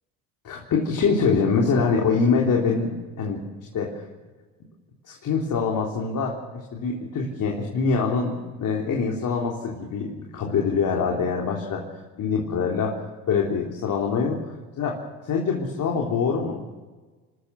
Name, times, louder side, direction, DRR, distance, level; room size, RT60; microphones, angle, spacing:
voice 1, 0.4-3.4 3.7-4.0 5.1-11.8 12.2-12.9 13.3-14.4 14.8-16.6, left 5 dB, 50° left, -1 dB, 3.7 m, -24 dB
27.0 x 13.0 x 8.2 m, 1.3 s
supercardioid pair, 80°, 38 cm